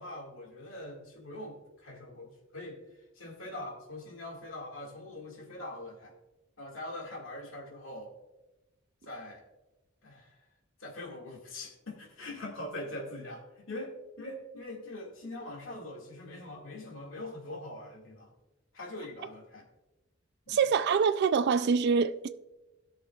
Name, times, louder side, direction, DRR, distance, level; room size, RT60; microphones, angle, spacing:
voice 1, 0.0-6.1 6.6-8.1 9.0-9.4 10.0-10.5 10.8-18.3 18.7-19.7 20.5-20.6, left 1 dB, 85° left, 2.0 m, -43 dB
voice 2, 20.5-22.3, right 6 dB, 55° right, 0.3 m, -25 dB
17.0 x 6.3 x 2.4 m
head